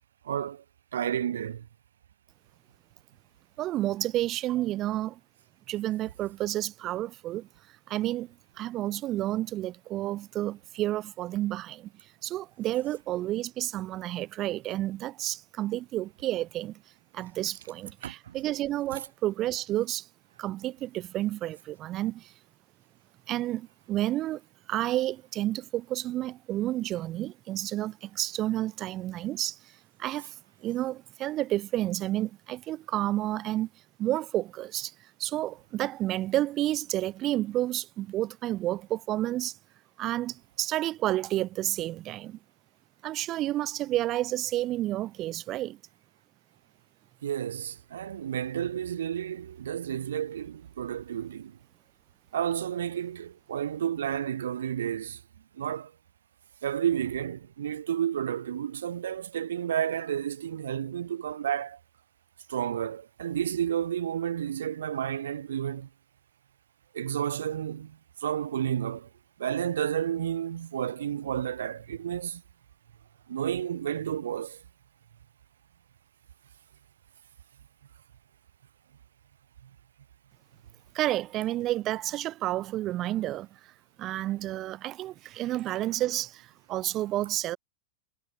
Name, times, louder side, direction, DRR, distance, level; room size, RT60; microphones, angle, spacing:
voice 1, 0.2-0.6 0.9-1.7 18.0-18.3 47.2-51.6 52.3-55.2 55.5-55.9 56.6-61.8 62.5-65.9 66.9-69.1 69.4-72.4 73.3-74.6, right 9 dB, 65° right, 1.2 m, -31 dB
voice 2, 3.6-5.2 5.7-7.5 7.9-11.9 12.2-16.8 17.1-20.1 20.4-22.3 23.3-24.4 24.7-29.7 30.0-30.4 30.6-33.7 34.0-39.6 40.0-42.4 43.0-45.8 80.9-83.7 84.0-87.6, right 14 dB, 35° right, 0.7 m, -30 dB
figure-of-eight pair, 90°, 0 cm